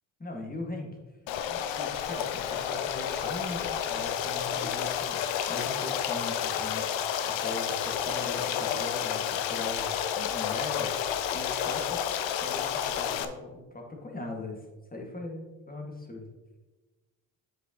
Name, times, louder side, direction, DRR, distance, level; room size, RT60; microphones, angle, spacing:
voice 1, 0.2-0.9 1.5-6.9 7.2-10.9 11.3-12.0 12.4-16.3, left 2 dB, 20° left, 0 dB, 1.9 m, -40 dB
Stream, 1.3-13.2, left 9 dB, 70° left, 0.7 m, -30 dB
7.7 x 6.5 x 2.9 m, 1.2 s
supercardioid pair, 60°, 48 cm